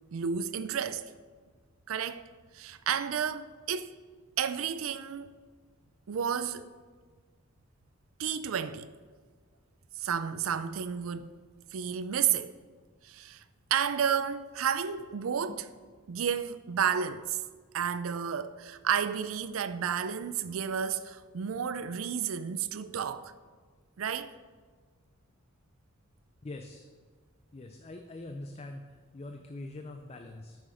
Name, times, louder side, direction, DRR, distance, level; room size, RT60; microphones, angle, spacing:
voice 1, 0.1-1.0 1.9-2.2 2.5-3.9 4.4-5.3 6.1-6.7 8.2-8.9 10.0-11.3 11.7-12.5 13.0-13.4 13.7-15.6 16.1-17.4 17.7-23.3 24.0-24.3, right 8 dB, 85° right, 0.4 m, -31 dB
voice 2, 26.4-26.9 27.5-30.6, left 2 dB, 30° left, 0.4 m, -43 dB
9.1 x 6.1 x 5.0 m
head